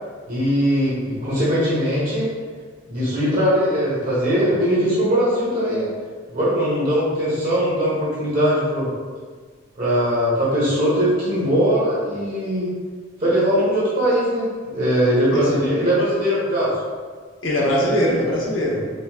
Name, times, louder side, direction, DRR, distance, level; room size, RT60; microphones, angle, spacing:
voice 1, 0.3-2.3 2.9-5.9 6.3-8.9 9.8-12.7 13.2-16.7, equal, 45° right, -9 dB, 1.4 m, -20 dB
voice 2, 15.3-15.9 17.4-18.9, equal, 75° left, -3 dB, 1.0 m, -22 dB
5.2 x 4.0 x 2.4 m, 1.5 s
head